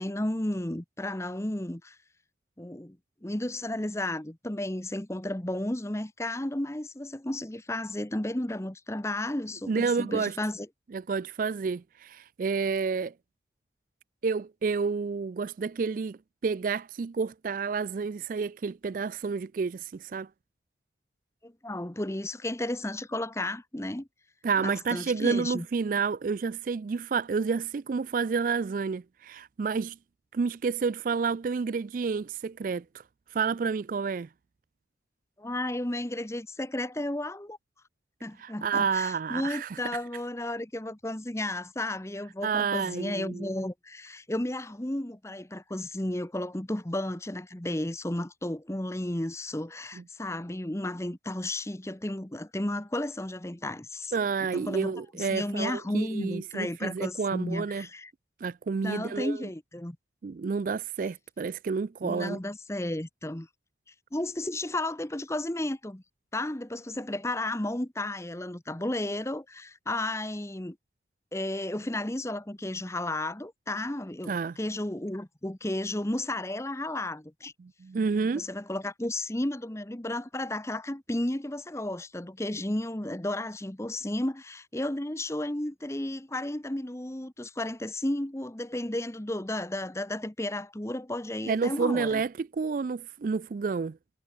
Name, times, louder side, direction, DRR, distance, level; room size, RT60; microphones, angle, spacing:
voice 1, 0.0-2.0 2.6-3.0 3.2-10.7 21.4-24.1 24.6-25.7 35.4-37.6 38.2-54.1 54.5-58.1 58.8-60.0 62.0-63.5 64.1-66.0 66.3-70.8 71.3-77.5 78.3-92.2, left 1 dB, 15° left, 1.0 m, -33 dB
voice 2, 9.7-10.4 10.9-13.1 14.2-20.3 24.4-30.0 30.3-32.8 33.3-34.3 38.4-39.8 42.4-43.5 54.1-57.9 58.4-59.5 60.2-62.4 74.3-74.6 77.6-78.4 91.5-94.0, right 5 dB, 45° right, 0.3 m, -30 dB
head